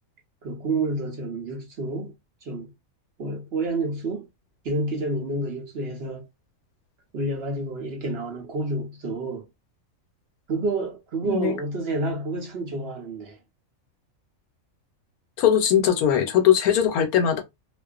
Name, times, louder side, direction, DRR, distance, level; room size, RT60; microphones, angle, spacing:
voice 1, 0.4-2.1 2.4-2.7 3.2-4.3 4.6-6.2 7.1-9.4 10.5-13.4, right 2 dB, 60° right, 0.7 m, -29 dB
voice 2, 15.4-17.4, left 9 dB, 90° left, 1.1 m, -20 dB
2.4 x 2.3 x 2.3 m
omnidirectional pair, 1.5 m